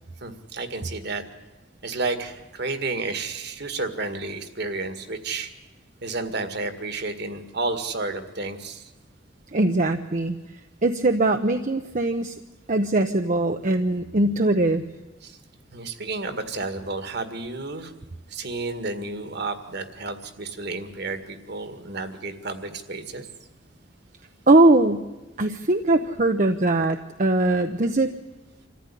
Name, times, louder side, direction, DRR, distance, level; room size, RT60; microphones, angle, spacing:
voice 1, 0.2-1.2 1.8-5.5 6.0-8.9 15.2-15.4 15.7-17.9 18.3-23.3, right 3 dB, 55° right, 9 dB, 1.9 m, -31 dB
voice 2, 9.5-10.4 10.8-12.4 12.7-14.8 24.5-25.0 25.4-28.1, right 2 dB, 40° right, 6 dB, 0.8 m, -21 dB
26.0 x 14.5 x 10.0 m, 1.1 s
head